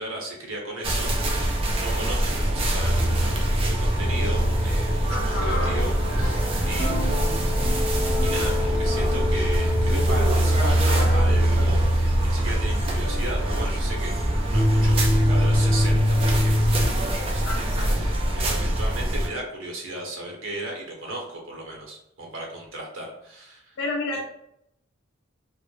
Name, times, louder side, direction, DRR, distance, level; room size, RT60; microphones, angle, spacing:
voice 1, 0.0-7.4 8.2-14.1 14.5-23.8 24.1-24.2, right 1 dB, 85° right, -1 dB, 0.8 m, -36 dB
sound 1, 0.8-19.3, right 1 dB, 30° right, 0.3 m, -25 dB
sound 2, 2.8-16.9, equal, 50° left, 0.8 m, -24 dB
voice 2, 5.1-5.8 17.5-18.1 23.8-24.2, left 2 dB, 70° left, -1 dB, 0.4 m, -31 dB
sound 3, 5.4-14.5 14.8-14.9, right 1 dB, 15° left, 0.8 m, -40 dB
2.1 x 2.0 x 3.0 m, 0.77 s
head